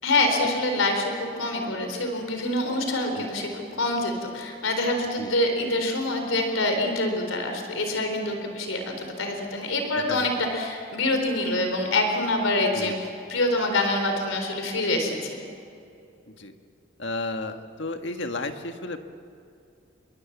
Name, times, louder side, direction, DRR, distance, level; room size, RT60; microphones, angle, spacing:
voice 1, 0.0-13.0 13.3-15.4, left 2 dB, 85° left, 4 dB, 4.0 m, -26 dB
voice 2, 10.0-10.4 12.7-13.0 16.3-16.5 17.0-19.0, left 2 dB, 65° left, 6 dB, 1.8 m, -33 dB
29.0 x 23.0 x 7.4 m, 2.6 s
head